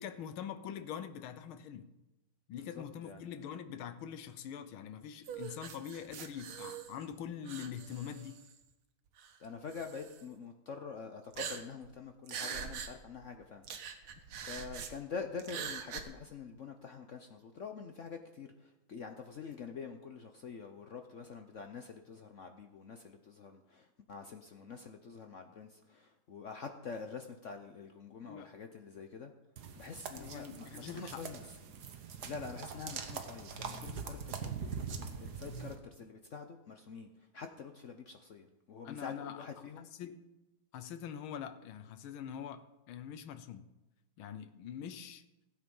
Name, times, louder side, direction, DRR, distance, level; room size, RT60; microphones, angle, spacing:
voice 1, 0.0-1.9 2.5-8.4 28.3-28.5 30.2-31.2 38.8-39.5 40.0-40.2 40.7-43.7 44.2-45.2, left 8 dB, 80° left, 11 dB, 1.7 m, -44 dB
voice 2, 2.5-3.2 9.4-13.6 14.0-29.3 29.8-31.5 32.3-39.9, left 5 dB, 65° left, 5 dB, 0.7 m, -46 dB
sound 1, 5.2-7.1 7.5-8.6 9.2-9.3 9.7-10.2 11.3-11.9 12.3-12.9 13.2-13.3 13.6-14.9 15.4-16.0, right 7 dB, 85° right, 2.0 m, -43 dB
sound 2, 29.6-35.7, right 6 dB, 55° right, 1.5 m, -43 dB
16.0 x 8.6 x 5.4 m, 0.99 s
omnidirectional pair, 2.3 m